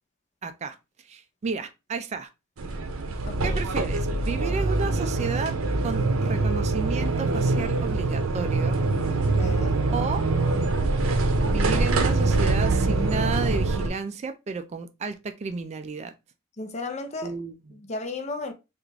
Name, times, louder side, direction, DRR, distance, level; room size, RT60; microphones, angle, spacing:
voice 1, 0.4-0.8 1.0-2.3 3.4-5.5 5.8-8.8 9.9-10.2 11.4-16.1 17.2-17.5, right 4 dB, 35° right, 0.3 m, -32 dB
sound 1, 2.6-13.9, right 3 dB, 75° right, 0.6 m, -24 dB
voice 2, 3.3-3.6 9.4-9.8 16.6-17.4 17.7-18.5, left 3 dB, 35° left, 0.6 m, -34 dB
3.4 x 2.4 x 3.1 m
head